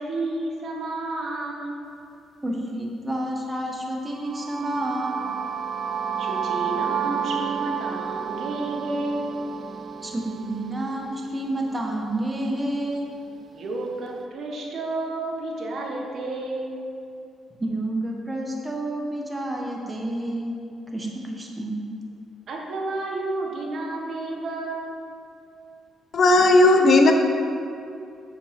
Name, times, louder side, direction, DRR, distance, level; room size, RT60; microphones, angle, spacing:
voice 1, 0.0-1.8 6.2-9.5 13.5-16.9 22.5-25.0, right 2 dB, 60° right, -1 dB, 1.6 m, -31 dB
voice 2, 2.4-5.3 10.0-13.1 17.6-20.5 20.9-21.7, right 1 dB, 15° right, -1 dB, 1.6 m, -29 dB
sound 1, 4.1-12.0, right 7 dB, 40° right, 0.6 m, -31 dB
voice 3, 26.1-27.1, left 2 dB, 55° left, 4 dB, 0.9 m, -15 dB
8.1 x 6.7 x 5.4 m, 2.5 s
cardioid pair, 90°, 0 cm